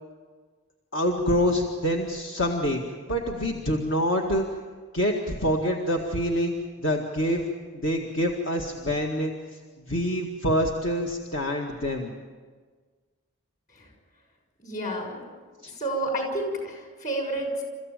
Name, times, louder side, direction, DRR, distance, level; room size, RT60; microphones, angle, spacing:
voice 1, 0.9-2.8 3.1-4.5 4.9-6.5 6.8-7.5 7.7-9.3 9.9-12.1 15.6-15.7, equal, 60° left, 1 dB, 1.9 m, -26 dB
voice 2, 14.6-15.1 15.8-17.6, right 1 dB, 35° left, 3 dB, 6.5 m, -30 dB
29.5 x 15.0 x 9.1 m, 1.5 s
head